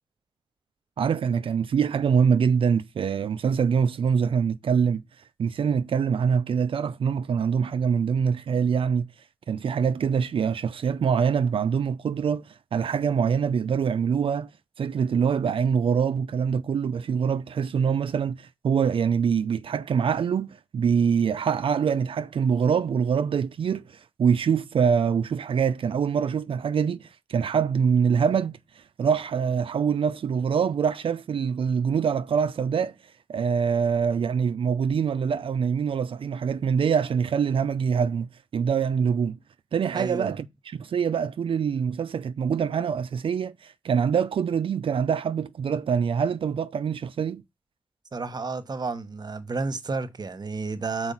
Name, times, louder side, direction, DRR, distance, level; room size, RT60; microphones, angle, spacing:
voice 1, 1.0-5.0 5.4-9.1 9.5-14.5 14.8-32.9 33.3-39.4 39.7-47.4, right 6 dB, 70° right, 0.5 m, -24 dB
voice 2, 39.9-40.3 48.1-51.1, right 3 dB, 45° right, 1.2 m, -31 dB
6.2 x 4.8 x 5.4 m
cardioid pair, 65°, 9 cm